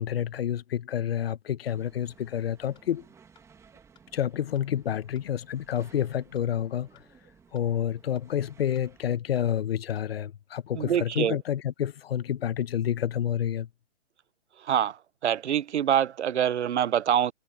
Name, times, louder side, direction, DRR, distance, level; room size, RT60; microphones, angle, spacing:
voice 1, 0.0-3.0 4.1-7.0 7.5-13.7, left 10 dB, 60° left, 1.0 m, -29 dB
sound 1, 1.7-9.2, right 6 dB, 10° right, 1.8 m, -58 dB
sound 2, 2.7-2.9 3.3-3.5 3.9-4.1 4.5-4.7 5.1-5.3 5.7-5.9 6.3-6.5 6.9-7.1 7.5-7.7 8.1-8.3 8.7-8.9 9.3-9.5 9.9-10.1 10.5-10.7 11.1-11.3, left 9 dB, 15° left, 3.9 m, -61 dB
voice 2, 10.7-11.4 14.6-15.0 15.2-17.3, right 9 dB, 75° right, 0.8 m, -25 dB
hypercardioid pair, 150°, 34 cm